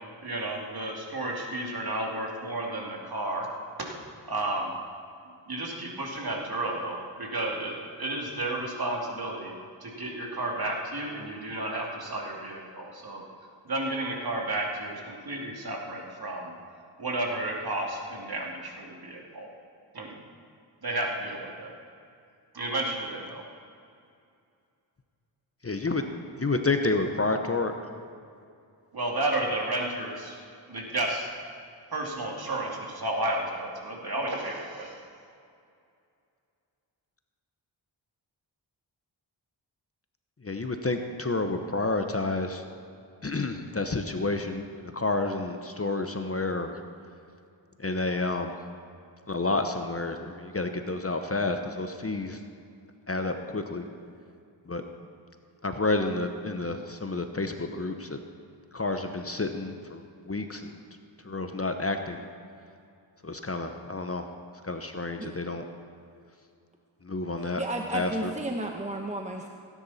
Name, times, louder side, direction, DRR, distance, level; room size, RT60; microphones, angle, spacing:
voice 1, 0.2-3.5 4.3-4.7 5.5-7.7 8.0-9.5 9.8-13.2 13.7-16.5 17.0-19.5 19.9-20.2 20.8-21.7 22.5-23.4 28.9-30.4 30.7-31.3 31.9-34.9, right 2 dB, 50° right, -1 dB, 2.6 m, -32 dB
voice 2, 25.6-26.0 26.4-27.7 40.4-42.6 43.2-46.8 47.8-48.6 49.3-52.4 53.1-53.9 54.7-54.8 55.6-58.2 58.7-60.8 61.2-62.2 63.2-64.2 64.6-65.6 67.0-67.6 67.9-68.3, left 3 dB, 30° left, 6 dB, 1.0 m, -30 dB
voice 3, 67.6-69.5, right 1 dB, 15° right, 2 dB, 1.0 m, -32 dB
17.0 x 10.0 x 4.3 m, 2.4 s
cardioid pair, 50°, 47 cm